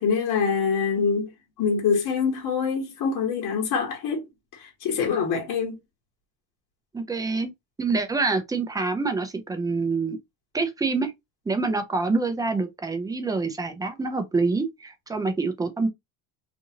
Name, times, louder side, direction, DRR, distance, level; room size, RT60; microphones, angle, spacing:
voice 1, 0.0-1.3 1.6-5.8, left 6 dB, 55° left, 1.3 m, -25 dB
voice 2, 6.9-7.5 7.8-10.2 10.5-11.1 11.5-15.9, right 3 dB, 10° right, 0.4 m, -26 dB
2.7 x 2.5 x 2.8 m
cardioid pair, 140°, 38 cm